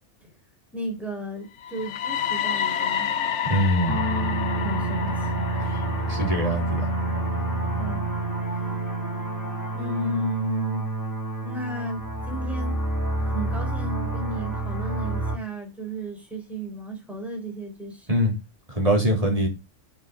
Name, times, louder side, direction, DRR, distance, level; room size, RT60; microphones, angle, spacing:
voice 1, 0.7-3.1 4.6-5.5 7.8-8.0 9.7-10.9 11.4-12.8 13.2-18.1 19.2-19.4, right 1 dB, ahead, 4.1 m, -33 dB
sound 1, 1.6-9.5, left 8 dB, 75° left, 1.1 m, -31 dB
voice 2, 3.4-4.0 5.7-5.8 6.1-6.8 18.1-18.4 18.7-19.5, equal, 30° right, 3.6 m, -23 dB
sound 2, 3.9-15.4, right 2 dB, 15° left, 2.5 m, -28 dB
7.4 x 6.5 x 5.9 m
omnidirectional pair, 1.2 m